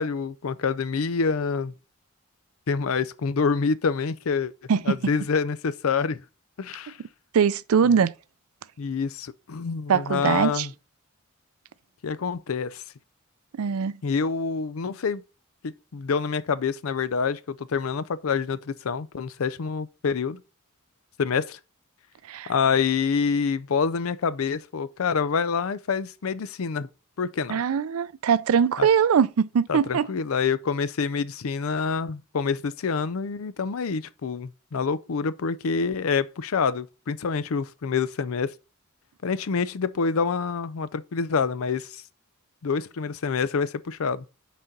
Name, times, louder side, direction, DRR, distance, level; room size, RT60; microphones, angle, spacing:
voice 1, 0.0-1.7 2.7-4.5 4.9-6.2 6.6-7.0 7.9-8.0 8.8-10.7 12.0-12.8 14.0-15.2 15.6-20.4 21.2-21.6 22.5-26.9 27.2-27.6 28.8-28.9 29.7-38.5 39.2-42.0 42.6-44.2, left 5 dB, 75° left, 0.5 m, -27 dB
voice 2, 7.3-8.1 9.9-10.7 13.6-14.0 22.3-22.5 27.5-30.1, right 7 dB, 90° right, 0.4 m, -22 dB
6.1 x 4.2 x 5.2 m
head